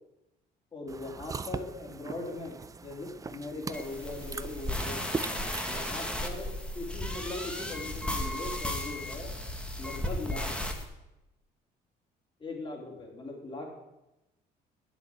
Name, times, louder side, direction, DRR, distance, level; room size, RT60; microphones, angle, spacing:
voice 1, 0.7-5.1 5.7-9.3 9.8-10.5 12.4-13.7, left 2 dB, 30° left, -1 dB, 3.3 m, -40 dB
sound 1, 0.9-6.5, right 4 dB, 20° right, 0.4 m, -41 dB
sound 2, 3.7-10.8, left 1 dB, 5° left, 1.4 m, -35 dB
8.1 x 7.2 x 8.5 m, 0.95 s
cardioid pair, 110°, 17 cm